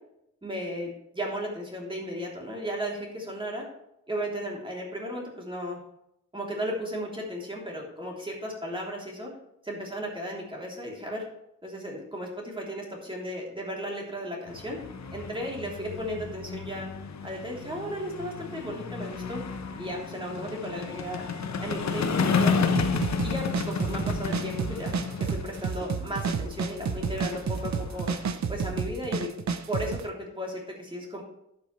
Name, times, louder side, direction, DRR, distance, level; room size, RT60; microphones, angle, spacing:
voice 1, 0.4-3.6 4.1-5.8 6.3-9.3 9.6-11.2 11.6-14.8 15.1-16.9 17.2-19.4 19.8-21.3 21.6-22.7 23.2-28.1 28.5-29.3 29.7-31.2, equal, 15° right, -2 dB, 3.3 m, -35 dB
sound 1, 14.5-28.3, left 5 dB, 65° left, 1.0 m, -32 dB
sound 2, 22.7-30.0, right 5 dB, 65° right, 0.8 m, -30 dB
12.0 x 8.3 x 3.3 m, 0.81 s
wide cardioid pair, 130°, 30 cm